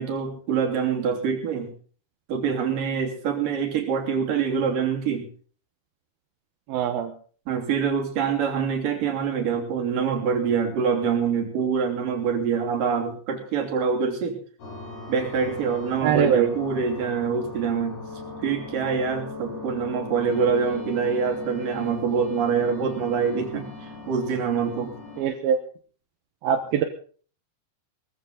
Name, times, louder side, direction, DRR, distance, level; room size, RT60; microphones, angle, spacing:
voice 1, 0.0-1.7 2.3-5.3 7.5-14.4 15.1-18.0 18.4-24.9, right 6 dB, 50° right, 3 dB, 4.3 m, -25 dB
voice 2, 6.7-7.1 16.0-16.6 25.2-25.6 26.4-26.8, right 8 dB, 70° right, 6 dB, 2.6 m, -22 dB
sound 1, 14.6-25.2, left 3 dB, 60° left, 8.8 m, -39 dB
20.0 x 14.5 x 4.0 m, 0.42 s
omnidirectional pair, 5.3 m